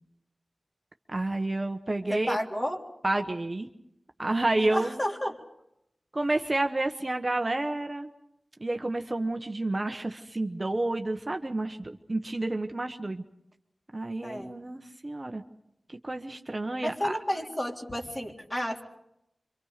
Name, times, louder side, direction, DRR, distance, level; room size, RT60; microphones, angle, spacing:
voice 1, 1.1-2.4 3.0-3.7 4.2-5.0 6.1-8.1 8.6-13.2 13.9-15.4 15.9-17.2, right 2 dB, 35° right, 5 dB, 1.2 m, -30 dB
voice 2, 2.1-2.8 4.7-5.4 14.2-14.6 16.8-18.8, equal, 25° left, 0 dB, 3.5 m, -31 dB
26.5 x 25.0 x 5.1 m, 0.81 s
wide cardioid pair, 55°, 0 cm